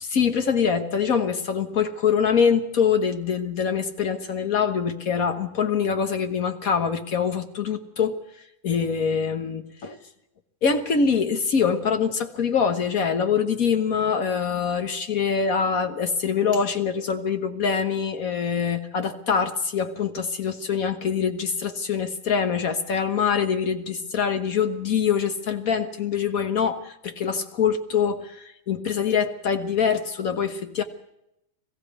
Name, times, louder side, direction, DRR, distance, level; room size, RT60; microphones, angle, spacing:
voice 1, 0.0-10.0 10.6-30.8, left 6 dB, 85° left, 6 dB, 0.7 m, -24 dB
22.0 x 15.5 x 8.2 m, 0.84 s
omnidirectional pair, 3.5 m